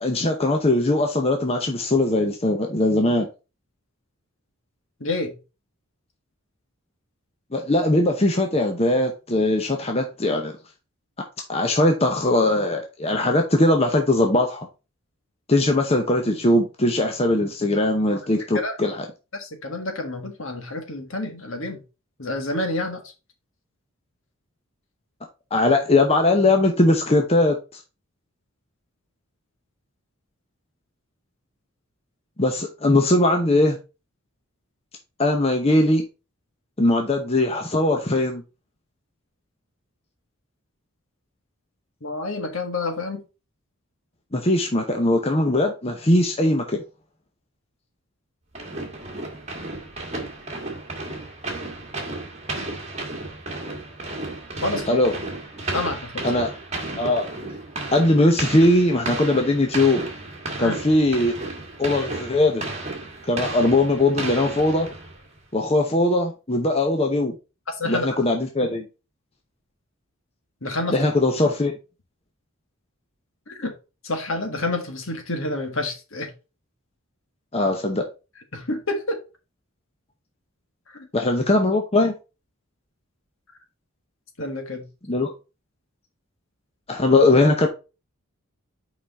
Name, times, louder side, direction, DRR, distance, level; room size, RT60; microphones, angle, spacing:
voice 1, 0.0-3.3 7.5-10.5 11.5-14.7 15.5-19.0 25.5-27.8 32.4-33.8 35.2-36.0 36.8-38.4 44.3-46.8 54.9-55.1 56.2-56.5 57.0-57.2 57.9-60.0 60.6-61.4 61.8-62.6 63.3-64.9 65.5-67.3 67.8-68.8 70.9-71.7 77.5-78.0 81.1-82.1 85.1-85.3 86.9-87.7, left 2 dB, 25° left, 0.8 m, -20 dB
voice 2, 5.0-5.3 18.5-18.8 19.3-21.8 22.2-23.0 42.0-43.2 54.6-55.0 55.7-56.3 60.6-60.8 67.7-68.1 70.6-71.0 73.5-73.7 74.0-76.3 78.5-79.2 80.9-81.0 84.4-84.9, left 2 dB, 65° left, 1.7 m, -28 dB
sound 1, 48.5-65.3, right 2 dB, 30° right, 1.6 m, -33 dB
5.8 x 5.0 x 4.1 m
head